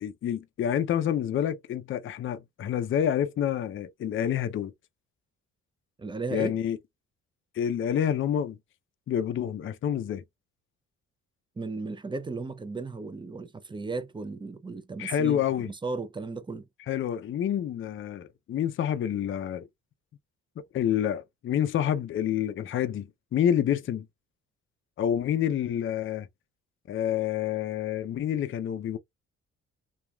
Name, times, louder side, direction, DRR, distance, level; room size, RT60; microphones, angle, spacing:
voice 1, 0.0-4.7 6.3-6.8 7.5-8.6 9.1-10.2 15.0-15.7 16.9-19.7 20.7-24.1 25.0-26.3 26.9-29.0, left 9 dB, 45° left, 0.5 m, -28 dB
voice 2, 6.0-6.5 11.6-15.4 15.6-16.6, right 3 dB, 15° right, 0.4 m, -35 dB
2.9 x 2.3 x 2.2 m
cardioid pair, 90°, 30 cm